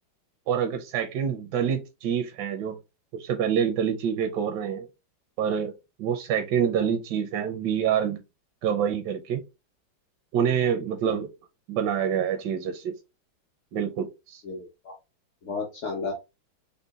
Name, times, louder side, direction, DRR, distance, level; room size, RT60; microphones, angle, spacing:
voice 1, 0.5-2.8 3.1-4.9 5.4-5.7 6.0-8.2 8.6-9.4 10.3-11.3 11.7-12.9 13.7-14.4, right 8 dB, 75° right, 1.1 m, -26 dB
voice 2, 14.4-15.0 15.4-16.1, left 4 dB, 60° left, 0.8 m, -33 dB
3.8 x 2.2 x 3.4 m
omnidirectional pair, 2.2 m